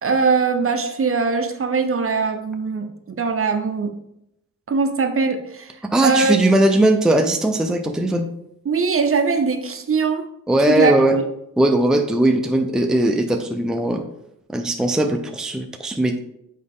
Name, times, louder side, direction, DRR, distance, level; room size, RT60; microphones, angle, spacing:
voice 1, 0.0-3.9 4.7-5.7 6.0-6.3 8.6-10.3 10.7-11.2, right 4 dB, 40° right, 6 dB, 0.8 m, -21 dB
voice 2, 5.9-8.3 10.5-11.2 11.6-14.0 14.5-16.2, right 1 dB, ahead, 4 dB, 0.5 m, -19 dB
6.4 x 4.8 x 3.6 m, 0.80 s
cardioid pair, 90°, 33 cm